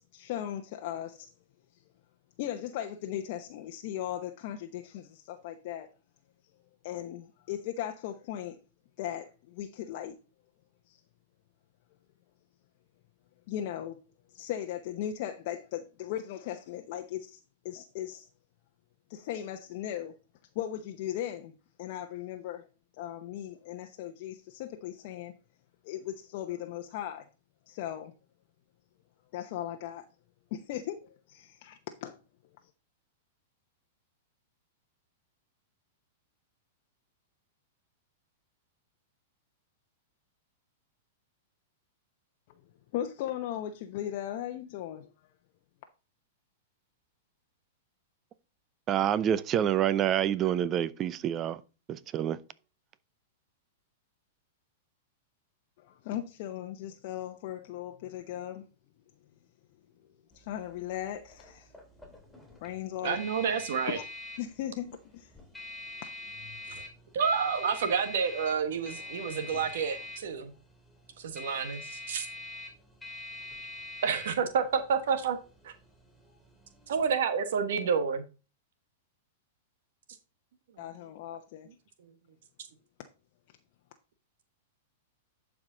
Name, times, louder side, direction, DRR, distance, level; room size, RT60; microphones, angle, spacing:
voice 1, 0.0-1.3 2.4-5.9 6.8-8.6 9.0-10.2 10.9-11.0 13.5-14.0 14.3-18.3 19.1-20.1 20.5-22.6 23.0-25.3 25.8-27.3 27.7-28.1 29.3-30.1 30.5-32.2 42.9-45.1 55.8-58.7 60.3-61.7 62.6-63.2 63.9-64.0 64.4-65.3 80.8-81.7, left 11 dB, 55° left, 0.9 m, -37 dB
voice 2, 48.9-51.6 51.9-52.4, right 10 dB, 30° right, 0.6 m, -27 dB
sound 1, 60.3-77.1, left 2 dB, 5° left, 3.1 m, -45 dB
voice 3, 63.0-64.0 66.7-66.8 67.1-70.5 71.2-72.3 74.0-75.4 75.6-75.7 76.9-78.2, right 6 dB, 70° right, 1.3 m, -29 dB
11.0 x 4.9 x 3.9 m
hypercardioid pair, 130°, 0 cm